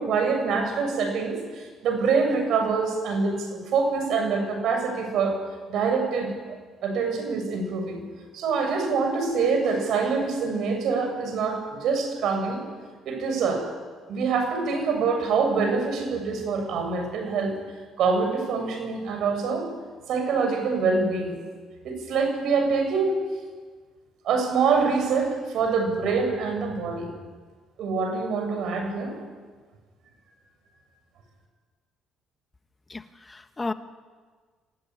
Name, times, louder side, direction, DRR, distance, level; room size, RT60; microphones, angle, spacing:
voice 1, 0.0-5.4 5.7-6.3 6.8-8.0 8.3-12.6 13.0-13.6 14.1-17.5 18.0-19.7 20.1-21.4 21.8-23.2 24.2-27.1 27.8-29.1, right 4 dB, 70° right, 5 dB, 7.4 m, -25 dB
voice 2, 32.9-33.7, left 3 dB, 20° left, 9 dB, 1.4 m, -33 dB
26.0 x 16.5 x 9.7 m, 1.5 s
cardioid pair, 85°, 0 cm